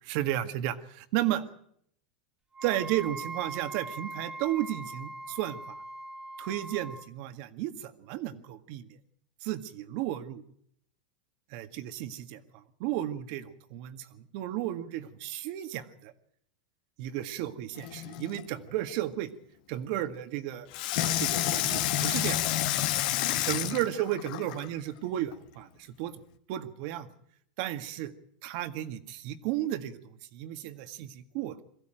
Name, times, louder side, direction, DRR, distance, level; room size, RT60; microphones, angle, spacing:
voice 1, 0.0-1.4 2.6-5.8 6.4-8.9 9.4-10.4 11.5-16.1 17.0-19.3 19.7-20.7 21.0-22.4 23.4-25.7 26.0-26.2 26.5-27.1 27.6-28.1 28.4-30.0 30.3-31.6, right 13 dB, 55° right, 10 dB, 1.8 m, -33 dB
Wind instrument woodwind instrument, 2.5-7.1, right 3 dB, 15° right, 1.6 m, -41 dB
Water tap faucet / Sink (filling or washing), 17.8-18.4 20.7-24.7 25.3-25.4, left 13 dB, 65° left, 2.0 m, -29 dB
22.5 x 15.5 x 9.1 m, 0.70 s
supercardioid pair, 130°, 5 cm